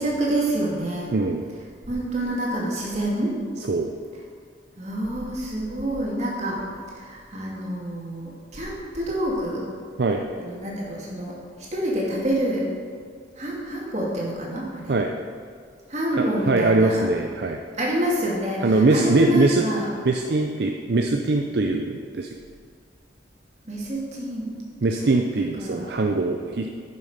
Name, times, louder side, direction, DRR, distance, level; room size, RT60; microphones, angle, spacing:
voice 1, 0.0-1.1 1.8-3.4 4.8-9.7 10.4-11.4 11.7-12.7 13.4-14.9 15.9-17.1 17.8-19.9 23.7-24.5 25.6-25.9, right 1 dB, 35° right, -4 dB, 2.4 m, -27 dB
voice 2, 1.1-1.4 3.7-3.9 10.0-10.2 14.9-15.1 16.5-17.6 18.6-19.6 20.0-22.4 24.8-26.7, right 3 dB, 60° right, 3 dB, 0.5 m, -22 dB
10.5 x 7.0 x 5.0 m, 2.1 s
head